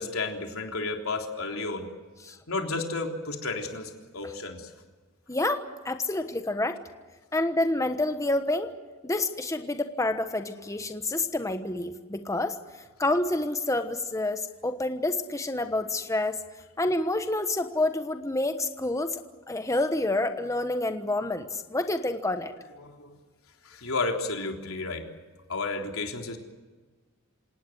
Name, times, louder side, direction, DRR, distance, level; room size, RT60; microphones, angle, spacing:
voice 1, 0.0-1.9 2.5-4.7 22.8-23.2 23.6-25.1 25.5-26.4, left 3 dB, 85° left, 3 dB, 3.6 m, -32 dB
voice 2, 5.3-6.8 7.3-8.7 9.0-12.5 13.0-16.4 16.8-19.2 19.5-22.5, left 2 dB, 15° left, 7 dB, 1.2 m, -28 dB
27.5 x 18.5 x 8.0 m, 1.3 s
head